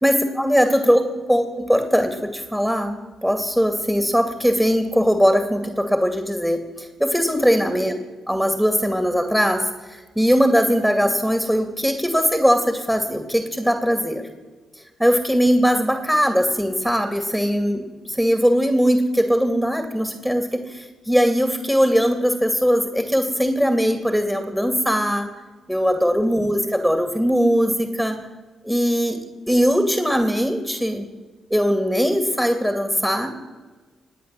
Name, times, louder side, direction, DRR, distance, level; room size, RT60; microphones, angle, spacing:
voice 1, 0.0-7.9 8.3-14.2 15.0-25.3 25.7-28.2 28.6-29.2 29.5-31.1 31.5-33.5, equal, 5° right, 7 dB, 2.2 m, -20 dB
19.0 x 8.8 x 7.6 m, 1.4 s
supercardioid pair, 50°, 0 cm